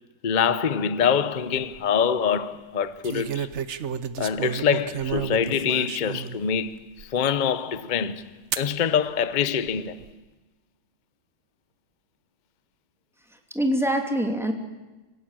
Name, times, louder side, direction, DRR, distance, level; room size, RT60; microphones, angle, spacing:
voice 1, 0.2-3.5 4.2-8.3 8.6-10.0, left 7 dB, 75° left, 0.4 m, -25 dB
sound 1, 1.4-1.8 3.0-6.4 7.0-7.1 8.5-8.7 9.6-10.1, right 8 dB, 55° right, 0.7 m, -32 dB
voice 2, 13.3-14.5, equal, ahead, 2.6 m, -25 dB
26.0 x 16.0 x 9.0 m
omnidirectional pair, 2.3 m